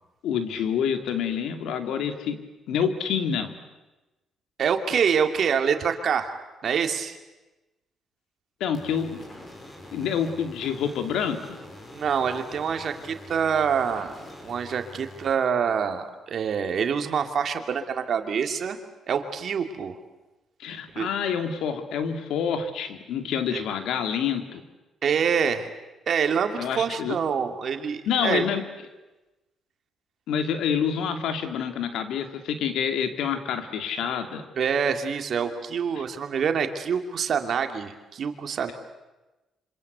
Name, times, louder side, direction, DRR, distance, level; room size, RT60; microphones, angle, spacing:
voice 1, 0.2-2.4 2.7-3.6 8.6-9.2 9.9-11.6 20.6-24.6 26.6-27.2 28.1-28.6 30.3-34.5 35.9-36.0, left 7 dB, 80° left, 7 dB, 2.7 m, -27 dB
voice 2, 4.6-6.3 6.6-7.2 11.9-14.1 14.4-18.8 19.1-20.0 20.9-21.1 23.5-23.6 25.0-25.7 26.1-28.5 34.6-38.7, right 7 dB, 60° right, 6 dB, 2.7 m, -26 dB
sound 1, 8.7-15.3, left 1 dB, 30° left, 7.0 m, -45 dB
26.5 x 26.0 x 8.2 m, 1.1 s
cardioid pair, 90°, 0 cm